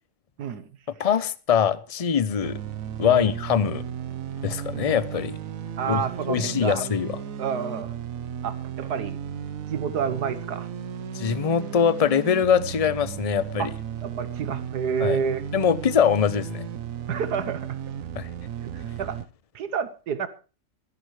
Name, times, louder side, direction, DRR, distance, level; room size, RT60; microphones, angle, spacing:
voice 1, 1.0-2.6 3.0-3.8 4.4-5.4 5.9-6.0 6.3-7.1 11.1-13.7 15.0-15.2 15.5-16.7 18.2-18.3, left 7 dB, 40° left, 0.5 m, -23 dB
sound 1, 2.4-19.3, right 8 dB, 60° right, 1.2 m, -35 dB
voice 2, 5.8-6.8 7.4-7.9 8.4-9.2 9.7-10.7 13.6-13.7 14.0-15.5 17.1-17.8 18.6-19.2 19.5-20.3, right 7 dB, 80° right, 1.6 m, -29 dB
23.0 x 11.0 x 3.2 m
omnidirectional pair, 1.7 m